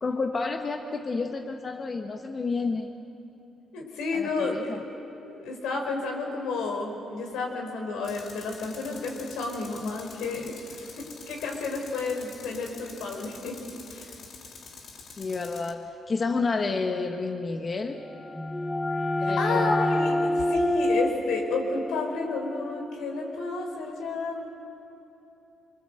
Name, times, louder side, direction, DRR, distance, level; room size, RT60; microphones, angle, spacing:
voice 1, 0.0-2.9 4.1-4.8 15.2-18.0 19.2-19.7, left 4 dB, 35° left, 4 dB, 1.4 m, -30 dB
voice 2, 3.7-13.6 13.9-14.1 19.2-24.5, left 3 dB, 90° left, 1 dB, 5.3 m, -31 dB
Tools, 8.0-15.7, left 5 dB, 65° left, 2.9 m, -46 dB
sound 1, 18.0-23.5, left 1 dB, 15° left, 1.0 m, -28 dB
25.5 x 24.0 x 7.9 m, 2.9 s
cardioid pair, 90°, 0 cm